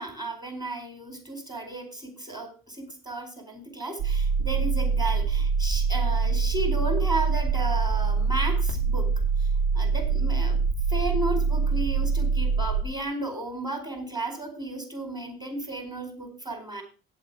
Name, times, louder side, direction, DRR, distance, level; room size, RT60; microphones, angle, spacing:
voice 1, 0.0-9.1 9.4-9.5 9.7-10.6 10.9-16.8, right 2 dB, 10° right, 3 dB, 4.6 m, -34 dB
sound 1, 4.0-12.8, right 5 dB, 80° right, 2.8 m, -24 dB
9.0 x 7.9 x 5.9 m, 0.36 s
hypercardioid pair, 60°, 43 cm